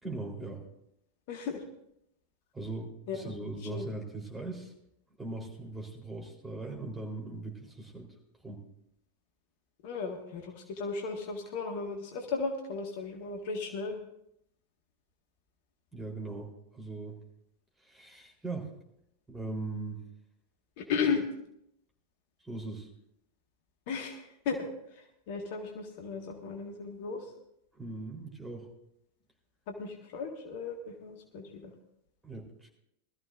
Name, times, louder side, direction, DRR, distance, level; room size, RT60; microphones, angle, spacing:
voice 1, 0.0-0.6 2.5-4.7 5.2-8.1 8.4-8.6 15.9-17.2 17.8-18.7 19.3-20.0 22.4-22.9 27.7-28.7 32.2-32.7, right 2 dB, 5° right, -1 dB, 3.7 m, -40 dB
voice 2, 1.3-1.6 3.1-3.3 3.7-3.9 9.8-14.0 20.8-21.2 23.9-27.3 29.7-31.7, left 5 dB, 50° left, 2 dB, 1.7 m, -35 dB
20.5 x 14.0 x 2.6 m, 0.77 s
figure-of-eight pair, 90°, 0 cm